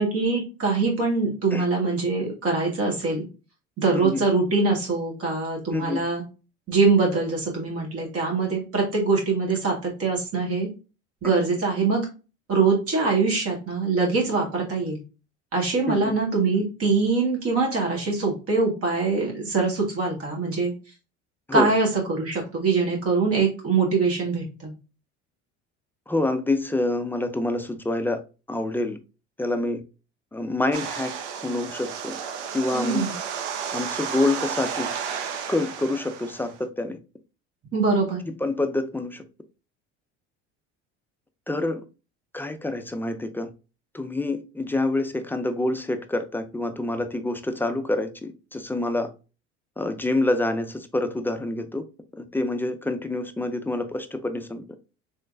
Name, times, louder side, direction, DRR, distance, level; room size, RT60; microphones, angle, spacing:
voice 1, 0.0-3.2 3.8-6.2 6.7-10.7 11.2-12.1 12.5-15.0 15.5-20.7 21.5-24.7 32.7-33.1 37.7-38.2, right 4 dB, 40° right, 1.6 m, -23 dB
voice 2, 26.1-28.2 28.5-29.0 29.4-29.8 30.3-31.1 31.4-32.2 32.5-33.1 33.7-34.9 35.5-37.0 38.3-39.2 41.5-41.8 42.3-43.5 43.9-49.1 49.8-51.8 52.1-54.6, left 2 dB, 5° left, 0.3 m, -27 dB
sound 1, 30.7-36.6, right 7 dB, 80° right, 0.7 m, -32 dB
3.2 x 3.1 x 2.5 m
hypercardioid pair, 70°, 35 cm